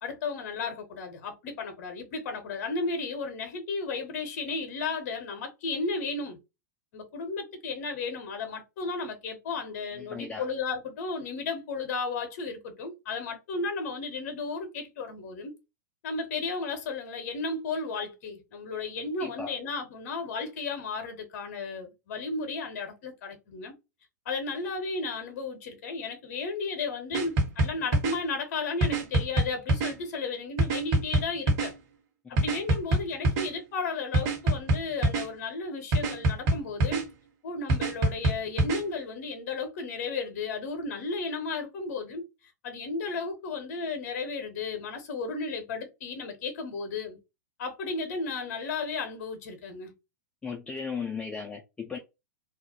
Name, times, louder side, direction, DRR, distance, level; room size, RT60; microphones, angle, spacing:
voice 1, 0.0-6.4 6.9-15.5 16.0-23.7 24.3-31.7 32.3-37.1 37.4-42.2 42.6-47.2 47.6-49.9, left 4 dB, 50° left, 0.7 m, -34 dB
voice 2, 10.0-10.5 19.2-19.6 32.3-32.4 50.4-52.0, left 5 dB, 10° left, 0.4 m, -36 dB
sound 1, 27.1-28.1 28.8-29.9 30.6-31.7 32.4-33.5 34.1-35.2 35.9-37.0 37.7-38.8, right 1 dB, 40° right, 1.1 m, -25 dB
2.3 x 2.0 x 2.8 m
figure-of-eight pair, 100°, 9 cm